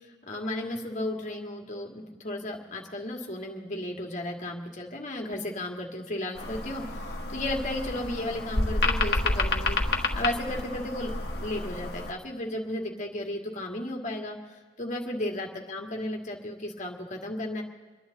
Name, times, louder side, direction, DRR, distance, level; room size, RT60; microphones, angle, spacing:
voice 1, 0.3-6.8 7.3-9.8 10.1-14.4 14.8-17.6, left 1 dB, 45° left, 1 dB, 2.0 m, -34 dB
sound 1, 6.4-12.1, left 2 dB, 60° left, 1.4 m, -29 dB
28.0 x 11.0 x 4.0 m, 1.4 s
head